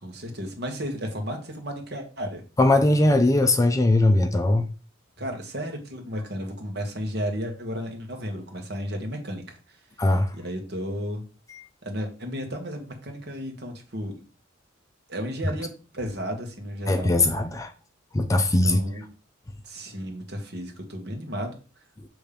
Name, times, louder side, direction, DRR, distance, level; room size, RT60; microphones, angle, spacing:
voice 1, 0.0-2.4 5.2-11.2 11.8-14.2 15.1-17.2 18.6-19.1 19.6-21.6, equal, 55° right, 1.6 m, -33 dB
voice 2, 2.6-4.7 10.0-10.3 16.9-17.7 18.1-18.8, left 2 dB, 15° left, 0.4 m, -20 dB
6.9 x 3.4 x 5.2 m
head